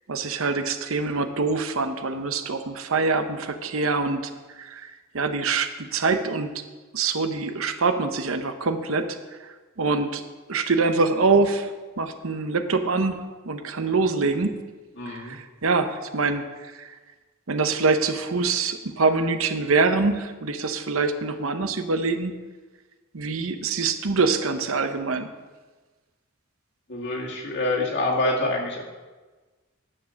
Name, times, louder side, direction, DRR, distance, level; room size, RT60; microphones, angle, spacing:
voice 1, 0.1-4.3 4.6-6.6 6.9-10.2 10.5-14.6 15.1-16.9 17.5-22.3 23.1-25.3, right 4 dB, 70° right, 8 dB, 0.8 m, -25 dB
voice 2, 15.0-15.4 26.9-28.8, left 2 dB, 55° left, -2 dB, 2.2 m, -26 dB
9.9 x 7.3 x 6.4 m, 1.3 s
head